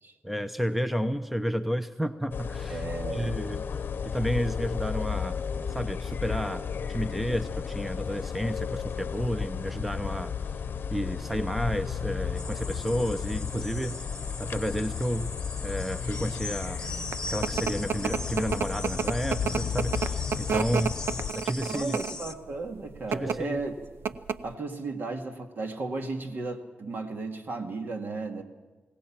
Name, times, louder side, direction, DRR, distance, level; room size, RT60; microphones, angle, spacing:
voice 1, 0.2-2.8 3.1-5.4 5.7-10.3 10.9-14.0 14.4-15.3 15.6-16.9 17.3-20.9 21.4-22.0 23.1-23.6, equal, 5° right, 10 dB, 0.6 m, -31 dB
sound 1, 2.3-21.3, left 7 dB, 60° left, 0.8 m, -34 dB
voice 2, 2.7-3.4 21.6-23.7 24.4-28.4, right 3 dB, 60° right, 4 dB, 2.1 m, -34 dB
sound 2, 12.4-22.3, left 2 dB, 20° left, 1.1 m, -39 dB
sound 3, 16.8-22.3 23.0-23.4 23.7-23.8 24.1-24.5, right 6 dB, 80° right, 0.7 m, -29 dB
21.0 x 18.0 x 7.3 m, 1.3 s
wide cardioid pair, 120°, 4 cm